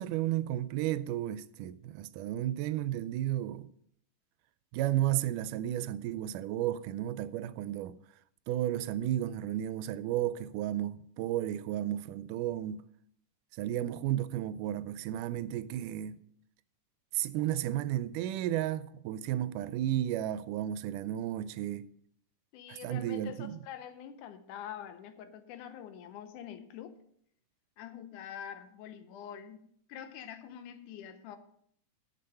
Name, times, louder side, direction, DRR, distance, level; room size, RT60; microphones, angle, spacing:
voice 1, 0.0-3.7 4.7-8.0 8.5-12.8 13.6-16.2 17.1-21.9 22.7-23.6, right 12 dB, 90° right, 2.1 m, -33 dB
voice 2, 22.5-27.0 27.8-31.4, left 9 dB, 80° left, 2.2 m, -45 dB
9.5 x 6.7 x 5.5 m
omnidirectional pair, 3.6 m